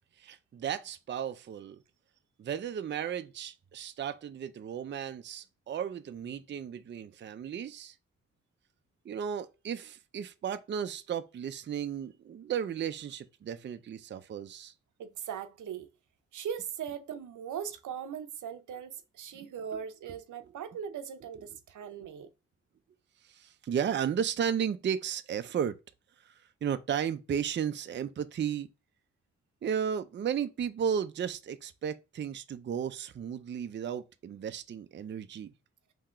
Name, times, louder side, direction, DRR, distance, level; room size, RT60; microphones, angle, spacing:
voice 1, 0.2-1.8 2.4-7.9 9.1-14.7 19.3-19.5 20.4-20.5 23.2-25.7 26.2-26.3 26.6-28.7 29.6-35.5, right 8 dB, 40° right, 0.4 m, -34 dB
voice 2, 15.0-15.9 16.3-22.3, right 8 dB, 85° right, 0.6 m, -39 dB
3.7 x 2.8 x 4.3 m
cardioid pair, 90°, 30 cm